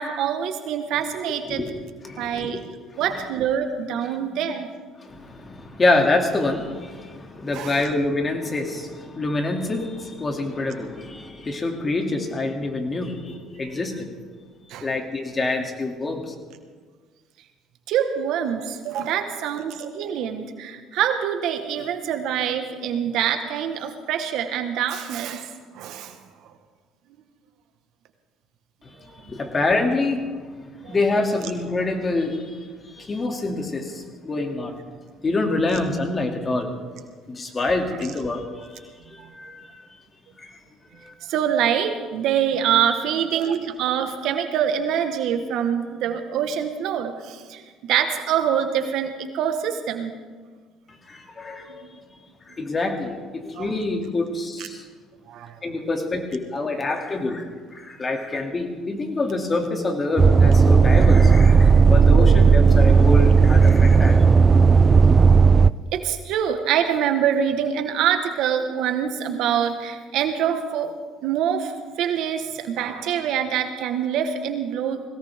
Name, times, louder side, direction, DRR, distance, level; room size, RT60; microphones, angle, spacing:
voice 1, 0.0-1.6 2.2-2.6 3.0-4.7 7.5-7.8 14.7-14.9 17.9-25.5 25.7-26.2 30.8-30.9 39.2-39.3 41.2-50.1 51.8-52.0 53.6-53.7 54.6-54.7 55.3-55.6 65.9-70.9 71.2-75.0, right 8 dB, 70° right, 7 dB, 1.5 m, -25 dB
voice 2, 2.0-2.6 5.0-14.1 14.8-16.3 28.8-30.3 30.8-34.8 35.2-36.7 37.3-39.9 40.4-40.5 41.0-41.1 50.9-51.9 52.5-54.8 55.6-64.2, left 2 dB, 30° left, 3 dB, 2.8 m, -26 dB
sound 1, 60.2-65.7, right 5 dB, 30° right, 0.4 m, -14 dB
21.0 x 17.5 x 3.7 m, 1.5 s
supercardioid pair, 85°, 0 cm